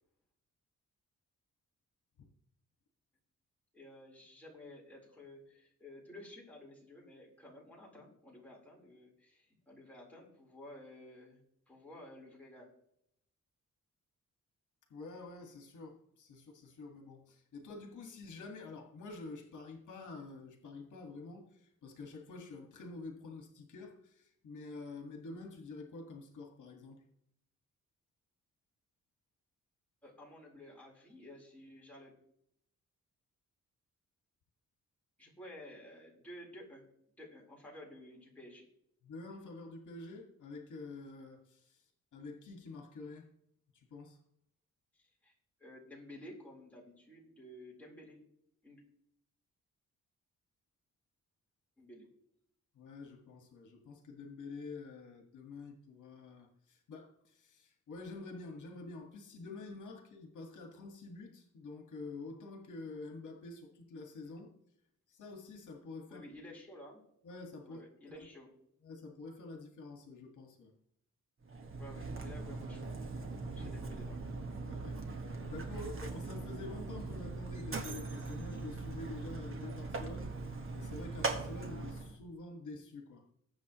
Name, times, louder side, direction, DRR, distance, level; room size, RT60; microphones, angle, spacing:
voice 1, 3.7-11.4 11.7-12.7 30.0-32.1 35.2-36.8 37.2-38.6 44.9-45.3 45.6-48.2 48.6-48.8 51.8-52.1 66.1-67.0 67.6-68.5 71.8-72.9 73.5-74.2, left 1 dB, 5° left, 4.1 m, -53 dB
voice 2, 14.9-27.0 39.0-43.3 43.7-44.2 52.7-64.5 65.1-66.2 67.2-67.8 68.1-68.3 68.8-70.7 73.6-73.8 74.7-83.3, left 3 dB, 70° left, 2.0 m, -48 dB
Mechanisms, 71.4-82.2, right 3 dB, 40° right, 1.6 m, -40 dB
20.5 x 8.1 x 3.1 m
wide cardioid pair, 165°, 31 cm